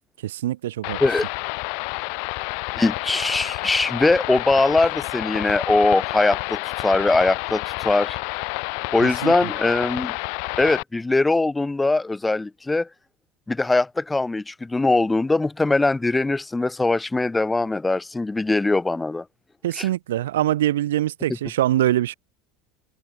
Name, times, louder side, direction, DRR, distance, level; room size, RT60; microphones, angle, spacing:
voice 1, 0.2-1.0 9.2-9.3 19.6-22.1, right 13 dB, 80° right, 1.9 m, -23 dB
sound 1, 0.8-10.8, left 40 dB or more, 65° left, 2.0 m, -29 dB
voice 2, 2.8-8.2 8.9-10.1 10.6-12.9 13.5-19.2 19.7-19.9, left 2 dB, 10° left, 4.5 m, -21 dB
hypercardioid pair, 85°, 0 cm